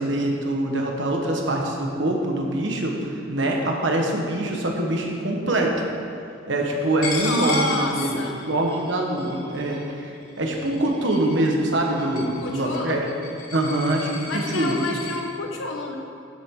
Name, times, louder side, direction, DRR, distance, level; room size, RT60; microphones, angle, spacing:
voice 1, 0.0-5.7 6.5-13.0 13.5-14.8, right 1 dB, 65° right, 1 dB, 1.4 m, -24 dB
Coin (dropping), 7.0-15.2, left 3 dB, 45° left, 2.0 m, -35 dB
voice 2, 7.1-8.4 12.2-13.1 14.2-16.0, left 3 dB, 85° left, 2 dB, 1.2 m, -30 dB
13.0 x 7.5 x 3.8 m, 2.6 s
head